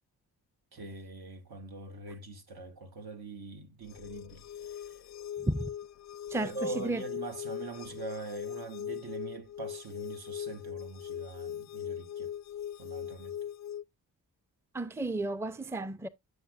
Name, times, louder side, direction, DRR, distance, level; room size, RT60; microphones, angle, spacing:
voice 1, 0.7-5.0 6.4-12.3 12.8-13.4, right 3 dB, 70° right, 1.3 m, -43 dB
sound 1, 3.8-13.8, left 10 dB, 45° left, 0.4 m, -40 dB
voice 2, 6.3-7.0 14.7-16.1, right 2 dB, 5° right, 0.5 m, -33 dB
8.0 x 6.5 x 2.5 m
cardioid pair, 45°, 38 cm